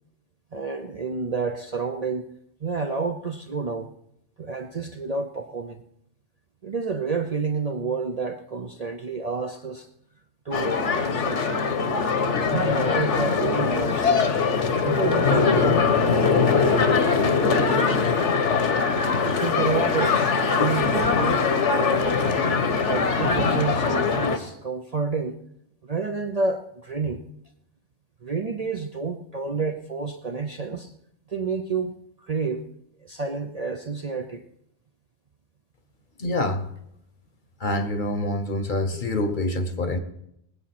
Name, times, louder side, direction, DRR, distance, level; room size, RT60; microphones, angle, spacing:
voice 1, 0.5-2.3 2.6-3.9 4.4-5.8 6.6-9.9 10.4-11.6 12.5-14.3 14.8-18.3 19.2-22.2 22.8-25.4 25.8-27.2 28.2-30.9 31.3-32.7 33.0-34.5, right 4 dB, 40° right, 6 dB, 0.6 m, -30 dB
sound 1, 10.5-24.4, left 5 dB, 70° left, 1.4 m, -22 dB
voice 2, 36.2-36.6 37.6-40.0, left 1 dB, 45° left, 9 dB, 1.0 m, -26 dB
19.5 x 8.3 x 5.9 m, 0.77 s
omnidirectional pair, 1.3 m